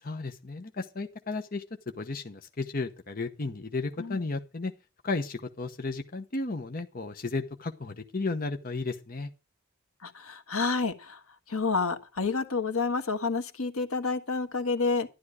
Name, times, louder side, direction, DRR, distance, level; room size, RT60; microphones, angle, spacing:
voice 1, 0.0-1.6 2.0-4.7 5.0-9.3, left 3 dB, 40° left, 0.9 m, -34 dB
voice 2, 10.0-11.2 11.5-15.1, left 4 dB, 85° left, 1.5 m, -29 dB
12.0 x 11.5 x 4.8 m
head